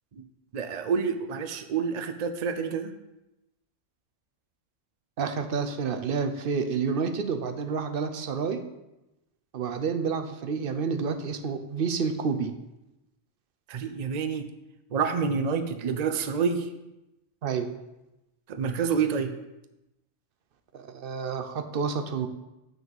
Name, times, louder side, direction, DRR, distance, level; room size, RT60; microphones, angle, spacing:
voice 1, 0.5-2.9 13.7-14.5 14.9-16.7 18.5-19.3, right 6 dB, 90° right, 9 dB, 0.3 m, -28 dB
voice 2, 5.2-8.6 9.5-12.5 17.4-17.7 20.7-22.3, right 5 dB, 55° right, 7 dB, 0.7 m, -29 dB
6.1 x 5.4 x 7.0 m, 0.95 s
omnidirectional pair, 1.5 m